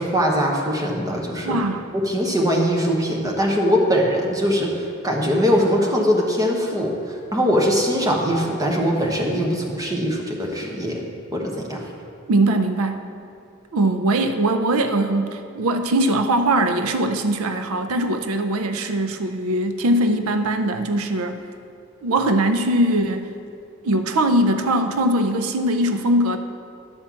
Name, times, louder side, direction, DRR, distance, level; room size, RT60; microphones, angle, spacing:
voice 1, 0.0-1.6 2.0-11.1 11.3-11.8, equal, 15° right, -1 dB, 1.1 m, -21 dB
voice 2, 1.4-1.8 12.3-13.0 13.7-21.4 22.0-23.3 23.8-26.4, right 1 dB, 80° right, 8 dB, 0.5 m, -21 dB
11.5 x 4.4 x 7.2 m, 2.5 s
head